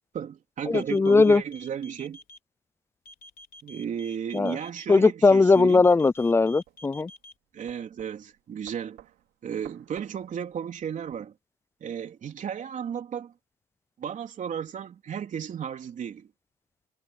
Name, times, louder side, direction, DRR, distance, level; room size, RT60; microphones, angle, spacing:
voice 1, 0.1-2.2 3.6-5.8 7.5-9.0 9.4-11.3 11.8-13.3 14.0-16.3, right 8 dB, 50° right, 3.5 m, -34 dB
sound 1, 0.7-2.4 3.1-4.9 5.5-7.3, left 1 dB, 55° left, 3.4 m, -48 dB
voice 2, 0.7-1.4 4.3-4.6 4.9-7.1, left 3 dB, 15° left, 0.4 m, -19 dB
sound 2, 5.9-11.2, right 14 dB, 80° right, 4.3 m, -55 dB
cardioid pair, 110°, 17 cm